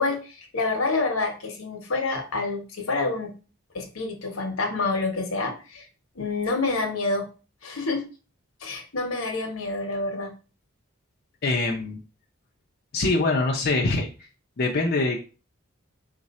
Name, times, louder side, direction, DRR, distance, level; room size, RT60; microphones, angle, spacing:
voice 1, 0.0-3.3 3.7-5.9 6.2-7.3 7.6-8.0 8.6-10.3, left 3 dB, 80° left, 4 dB, 1.0 m, -27 dB
voice 2, 11.4-12.0 12.9-14.1 14.6-15.2, left 2 dB, 45° left, 0 dB, 0.5 m, -23 dB
4.0 x 2.5 x 4.1 m, 0.34 s
head